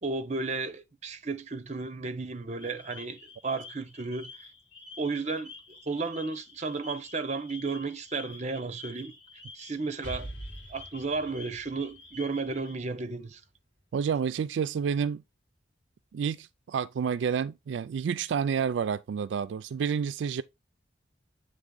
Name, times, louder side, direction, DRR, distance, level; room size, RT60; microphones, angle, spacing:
voice 1, 0.0-4.3 5.0-5.5 5.8-9.1 9.6-10.3 10.7-13.4, right 3 dB, 40° right, 0.7 m, -33 dB
sound 1, 2.6-12.7, left 3 dB, 30° left, 2.8 m, -49 dB
Explosion, 10.0-13.8, right 1 dB, 80° left, 2.0 m, -45 dB
voice 2, 13.9-15.2 16.1-20.4, right 7 dB, 80° right, 0.3 m, -29 dB
8.3 x 3.3 x 3.8 m
head